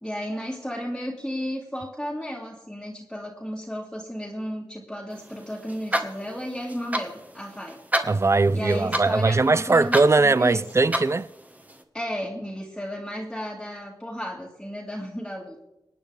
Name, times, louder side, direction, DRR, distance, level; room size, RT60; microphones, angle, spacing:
voice 1, 0.0-7.8 8.5-10.6 11.9-15.7, equal, 5° left, 2.0 m, -33 dB
sound 1, 5.1-11.8, right 1 dB, 20° right, 1.4 m, -32 dB
voice 2, 8.1-11.3, right 3 dB, 35° right, 0.5 m, -20 dB
26.5 x 9.4 x 3.4 m
wide cardioid pair, 90°, 8 cm